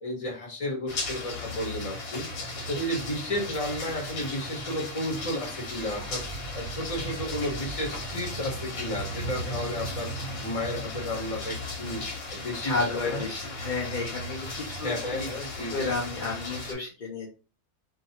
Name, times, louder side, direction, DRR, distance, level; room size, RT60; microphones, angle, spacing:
voice 1, 0.0-2.3 2.7-6.2 6.5-10.1 10.4-12.0 12.3-13.2 14.8-15.9, left 1 dB, 30° left, 0 dB, 0.8 m, -33 dB
sound 1, 0.9-16.7, left 1 dB, 85° left, 1.3 m, -36 dB
voice 2, 9.3-9.8 12.6-17.3, left 3 dB, 60° left, -2 dB, 0.5 m, -32 dB
2.5 x 2.3 x 2.7 m, 0.33 s
omnidirectional pair, 1.4 m